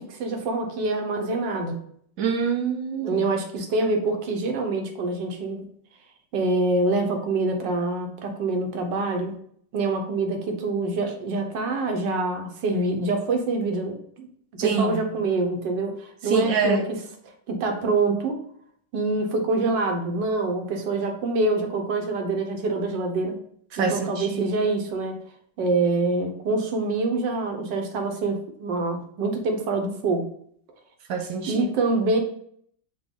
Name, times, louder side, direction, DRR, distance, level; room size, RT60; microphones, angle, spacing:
voice 1, 0.0-1.8 3.0-5.6 6.3-9.3 9.7-14.3 14.6-16.8 17.5-18.4 18.9-23.4 23.8-25.2 25.6-30.3 31.5-32.2, right 3 dB, 80° right, 4 dB, 1.5 m, -25 dB
voice 2, 2.2-3.3 14.6-15.1 16.2-16.9 23.7-24.4 31.1-31.7, right 5 dB, 65° right, 4 dB, 0.9 m, -25 dB
6.0 x 2.3 x 3.6 m, 0.64 s
omnidirectional pair, 1.9 m